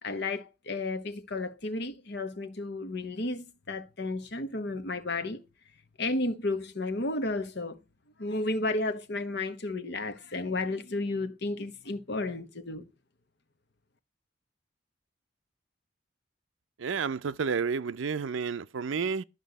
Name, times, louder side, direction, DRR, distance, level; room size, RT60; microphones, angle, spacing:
voice 1, 0.0-5.4 6.0-7.8 8.2-12.9, left 2 dB, 60° left, 1.1 m, -32 dB
voice 2, 16.8-19.2, right 5 dB, 80° right, 0.5 m, -30 dB
12.5 x 5.5 x 4.0 m
head